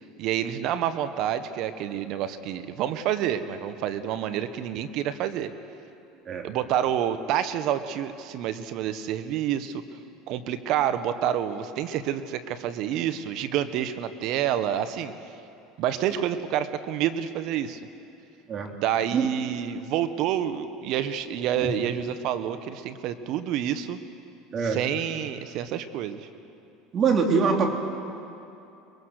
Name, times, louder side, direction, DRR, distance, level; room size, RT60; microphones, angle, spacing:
voice 1, 0.2-5.5 6.4-9.8 10.3-15.1 15.8-17.8 18.7-24.0 24.6-26.3, right 10 dB, 60° right, 11 dB, 1.3 m, -28 dB
voice 2, 26.9-27.8, right 5 dB, 40° right, 3 dB, 3.1 m, -24 dB
24.0 x 22.0 x 6.6 m, 2.7 s
supercardioid pair, 95°, 0 cm